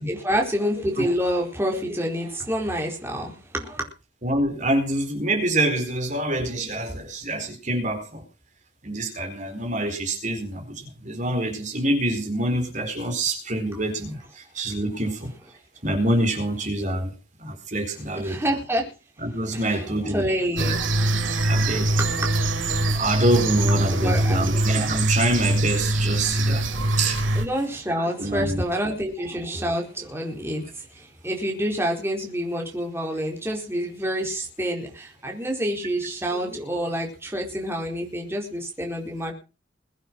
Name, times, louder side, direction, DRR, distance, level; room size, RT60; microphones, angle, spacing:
voice 1, 0.0-3.9 13.7-13.8 18.1-18.9 19.5-22.3 23.9-24.4 25.7-25.9 26.7-26.9 27.3-39.3, equal, 15° right, 1 dB, 4.5 m, -28 dB
voice 2, 4.2-8.2 8.8-15.3 15.8-17.1 17.4-18.4 19.2-20.3 20.6-20.8 21.4-21.9 22.9-26.6 27.0-27.2 28.2-28.6, right 1 dB, 40° right, 5 dB, 4.5 m, -26 dB
sound 1, 20.6-27.4, right 2 dB, 90° right, 3.7 m, -23 dB
22.0 x 9.0 x 6.2 m, 0.33 s
head